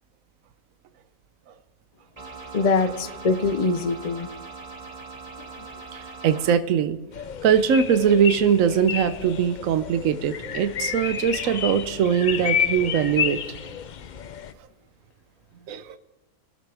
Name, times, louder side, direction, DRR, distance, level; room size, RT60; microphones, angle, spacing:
sound 1, 2.2-6.5, right 4 dB, 25° right, 2.0 m, -41 dB
voice 1, 2.5-4.3, left 4 dB, 35° left, 11 dB, 0.7 m, -23 dB
voice 2, 5.9-7.0 7.4-13.4 15.7-15.9, right 7 dB, 70° right, 11 dB, 1.2 m, -21 dB
sound 2, 7.1-14.5, left 8 dB, 85° left, 0.4 m, -30 dB
27.0 x 13.0 x 3.4 m, 1.1 s
omnidirectional pair, 1.5 m